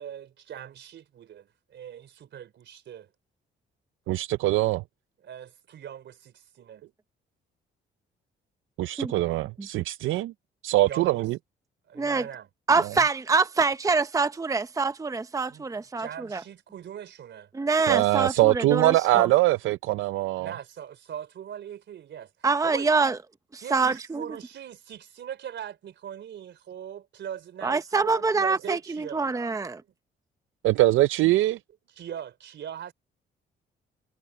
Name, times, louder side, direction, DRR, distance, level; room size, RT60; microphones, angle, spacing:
voice 1, 0.0-3.1 5.2-6.4 6.7-6.8 10.8-11.3 11.9-12.5 15.5-15.7 16.0-17.5 20.4-22.3 22.6-22.9 23.6-29.3 32.0-32.9, right 9 dB, 65° right, 3.7 m, -40 dB
voice 2, 4.1-4.8 8.8-9.4 9.7-10.3 10.6-11.4 17.9-20.5 30.6-31.6, right 17 dB, 80° right, 0.5 m, -22 dB
voice 3, 12.0-12.3 12.7-16.4 17.5-19.3 22.4-23.2 23.5-24.3 27.6-29.8, right 4 dB, 15° right, 0.8 m, -25 dB
cardioid pair, 90°, 20 cm